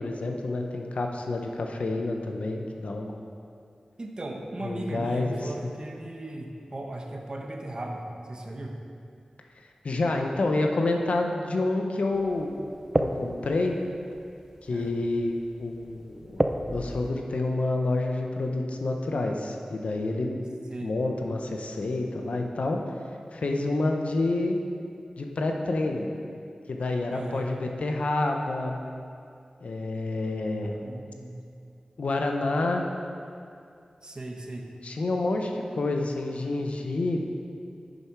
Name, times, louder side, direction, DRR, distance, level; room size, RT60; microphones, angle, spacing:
voice 1, 0.0-3.1 4.6-5.7 9.8-12.6 13.0-13.8 14.6-16.4 16.7-20.4 20.8-22.8 23.3-24.6 25.2-26.1 26.7-28.8 29.6-30.8 32.0-32.8 34.8-37.3, left 2 dB, 75° left, 2 dB, 0.9 m, -28 dB
voice 2, 4.0-8.8 14.7-15.0 20.7-20.9 27.1-27.5 30.6-31.4 34.0-34.7, right 1 dB, 40° right, 2 dB, 1.1 m, -37 dB
sound 1, 12.1-17.1, right 1 dB, 20° right, 0.6 m, -33 dB
10.5 x 6.9 x 4.7 m, 2.5 s
wide cardioid pair, 70°, 2 cm